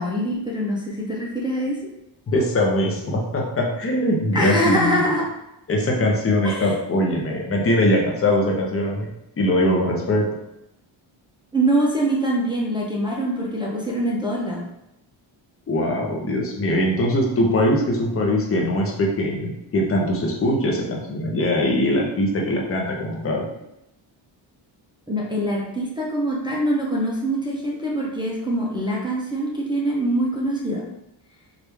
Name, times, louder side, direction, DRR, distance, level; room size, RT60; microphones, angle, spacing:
voice 1, 0.0-1.9 4.3-5.3 6.4-6.7 11.5-14.7 25.1-31.0, right 1 dB, 10° right, -4 dB, 0.5 m, -24 dB
voice 2, 2.3-5.0 5.7-9.1 9.4-10.3 15.7-23.4, left 1 dB, 30° left, -1 dB, 0.7 m, -21 dB
3.1 x 2.5 x 3.3 m, 0.86 s
cardioid pair, 125°, 48 cm